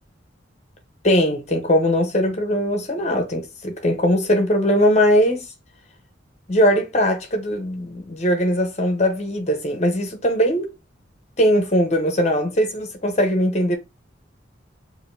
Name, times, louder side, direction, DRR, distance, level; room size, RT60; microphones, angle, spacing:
voice 1, 1.0-5.5 6.5-10.7 11.4-13.8, equal, 35° left, 0.9 m, -20 dB
4.9 x 2.7 x 2.6 m
head